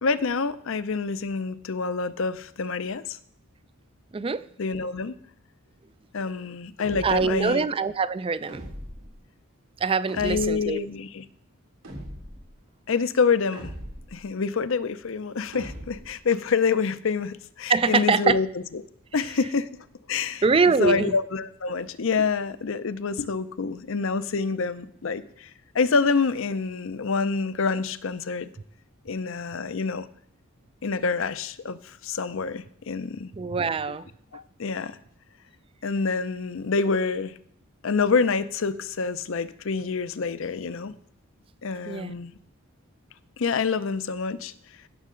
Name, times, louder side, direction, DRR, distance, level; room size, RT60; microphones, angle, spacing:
voice 1, 0.0-3.2 4.6-5.1 6.1-7.7 10.1-11.2 12.9-13.7 14.1-18.5 19.1-19.7 20.1-28.5 29.0-30.1 30.8-33.3 33.9-34.0 34.3-35.0 35.8-37.3 37.8-40.9 41.6-42.3 43.4-44.5, left 5 dB, 60° left, 0.5 m, -27 dB
voice 2, 4.1-4.4 7.0-8.6 9.8-10.8 17.7-18.4 20.4-21.1 33.3-34.1 41.9-42.1, right 4 dB, 25° right, 0.3 m, -23 dB
sound 1, 6.8-7.4 8.5-9.2 10.1-10.7 11.8-12.5 13.5-14.2 15.5-16.2, equal, 85° right, 2.9 m, -39 dB
16.5 x 6.5 x 3.8 m
head